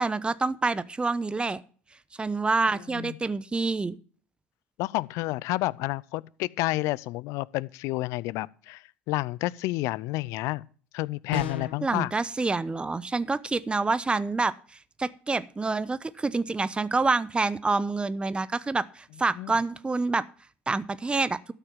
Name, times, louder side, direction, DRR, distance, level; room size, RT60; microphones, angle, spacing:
voice 1, 0.0-1.6 2.2-4.0 11.8-14.5 15.0-20.2 20.7-21.4, right 3 dB, 20° right, 0.8 m, -27 dB
voice 2, 4.8-10.6 10.9-12.1 19.4-19.5, left 20 dB, 60° left, 0.5 m, -30 dB
sound 1, 11.3-11.9, left 7 dB, 85° left, 1.0 m, -30 dB
13.0 x 5.8 x 7.2 m
hypercardioid pair, 70°, 6 cm